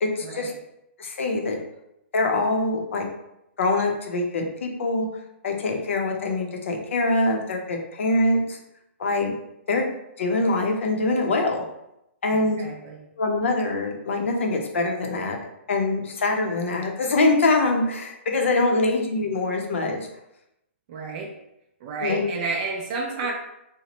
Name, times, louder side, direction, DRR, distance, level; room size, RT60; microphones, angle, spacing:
voice 1, 0.0-0.5 1.0-1.6 2.1-3.1 3.6-5.1 5.4-8.6 9.0-9.4 9.7-9.9 10.2-11.6 12.2-12.6 13.2-15.4 15.7-20.0 22.0-22.2, left 2 dB, 70° left, 2 dB, 0.6 m, -24 dB
voice 2, 12.3-13.0 20.9-21.3 21.8-23.3, right 4 dB, 35° right, 0 dB, 0.4 m, -31 dB
2.8 x 2.0 x 2.9 m, 0.84 s
hypercardioid pair, 155°, 7 cm